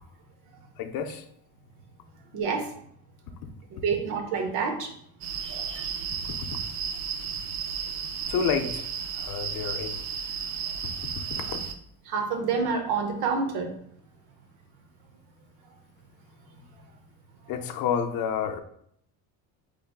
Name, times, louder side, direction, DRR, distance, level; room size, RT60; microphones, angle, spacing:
voice 1, 0.8-1.2 6.4-6.5 8.3-8.9 9.2-10.0 11.3-11.6 17.5-18.6, left 7 dB, 60° left, 6 dB, 0.5 m, -29 dB
voice 2, 2.3-2.7 3.7-4.9 5.4-6.1 12.1-13.7, right 5 dB, 80° right, 4 dB, 0.8 m, -28 dB
sound 1, 5.2-11.7, right 7 dB, 50° right, 0.4 m, -33 dB
3.5 x 3.2 x 2.2 m, 0.68 s
cardioid pair, 125°, 38 cm